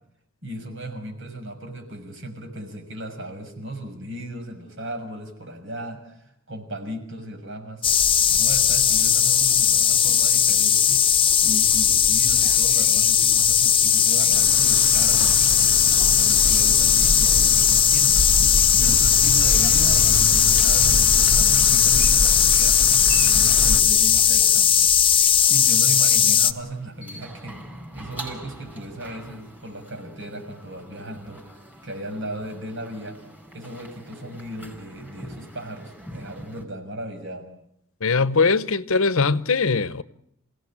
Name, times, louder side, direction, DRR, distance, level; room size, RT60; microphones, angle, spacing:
voice 1, 0.4-7.8 8.3-11.1 11.4-15.8 16.2-18.2 18.7-22.8 23.2-24.9 25.5-31.4 31.8-33.2 33.5-37.5, right 1 dB, 60° right, 6.2 m, -36 dB
sound 1, 7.8-26.5, left 8 dB, 25° left, 1.0 m, -18 dB
sound 2, 14.3-23.8, equal, 75° right, 1.7 m, -27 dB
sound 3, 26.4-36.7, right 1 dB, 10° right, 5.3 m, -43 dB
voice 2, 38.0-40.0, left 4 dB, 70° left, 0.9 m, -21 dB
28.0 x 17.0 x 8.6 m
head